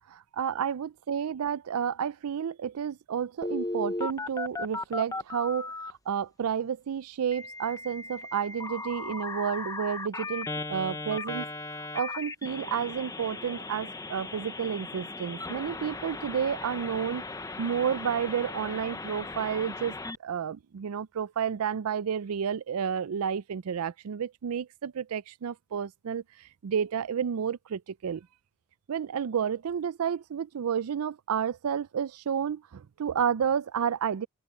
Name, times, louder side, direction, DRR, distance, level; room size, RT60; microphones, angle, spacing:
voice 1, 0.0-11.5 11.8-17.2 17.6-20.0 20.2-28.3 28.9-34.3, right 7 dB, 75° right, 0.4 m, -31 dB
Telephone, 3.4-5.9 7.3-20.2, left 3 dB, 15° left, 0.7 m, -37 dB
head